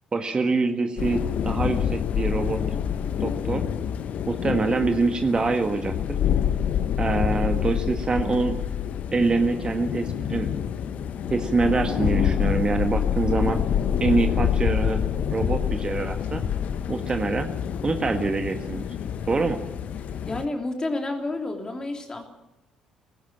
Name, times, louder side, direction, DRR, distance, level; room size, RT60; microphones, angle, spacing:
voice 1, 0.1-2.6 3.2-3.6 4.3-5.9 7.0-8.6 9.1-10.5 11.3-13.6 14.0-15.0 15.3-16.4 16.9-17.5 17.8-18.9 19.3-19.6, right 3 dB, 30° right, 6 dB, 1.6 m, -25 dB
sound 1, 1.0-20.5, left 8 dB, 55° left, 1.1 m, -27 dB
voice 2, 20.2-22.2, left 2 dB, 25° left, 4 dB, 3.1 m, -30 dB
18.5 x 16.5 x 8.8 m, 0.95 s
figure-of-eight pair, 45°, 3 cm